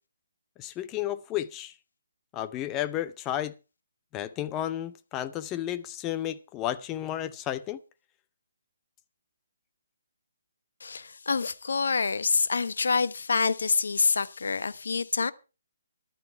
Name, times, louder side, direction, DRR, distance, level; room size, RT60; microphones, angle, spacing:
voice 1, 0.6-1.7 2.3-3.5 4.1-7.8, left 12 dB, 15° left, 0.7 m, -32 dB
voice 2, 10.8-15.3, left 4 dB, 75° left, 1.0 m, -26 dB
14.5 x 12.0 x 4.6 m
hypercardioid pair, 165°, 0 cm